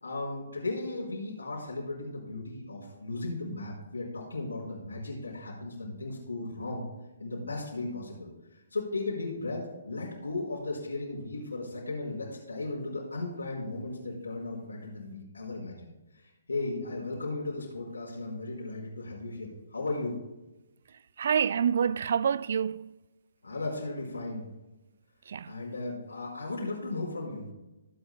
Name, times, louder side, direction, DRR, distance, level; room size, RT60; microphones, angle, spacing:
voice 1, 0.0-6.9 7.2-8.3 8.7-15.9 16.2-20.2 23.4-24.5 25.4-27.5, left 2 dB, 75° left, 3.6 m, -36 dB
voice 2, 21.2-22.9 25.3-25.5, right 7 dB, 50° right, 0.3 m, -27 dB
20.5 x 8.0 x 2.3 m
figure-of-eight pair, 130°, 0 cm